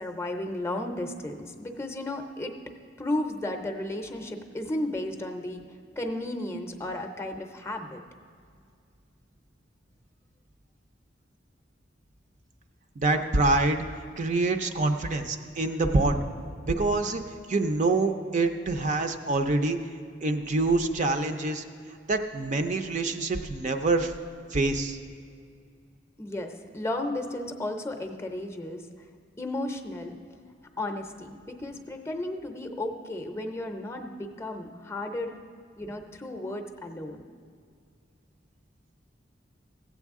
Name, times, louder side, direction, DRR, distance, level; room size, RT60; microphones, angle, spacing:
voice 1, 0.0-2.5 3.0-5.6 6.0-8.0 26.2-28.8 29.4-30.1 30.8-35.3 35.8-37.2, left 1 dB, 15° left, 5 dB, 0.6 m, -34 dB
voice 2, 13.0-13.8 14.2-16.2 16.6-17.2 17.5-19.8 20.2-21.6 22.1-24.1 24.5-25.0, right 2 dB, 40° right, 7 dB, 0.5 m, -25 dB
15.0 x 8.2 x 3.6 m, 2.3 s
head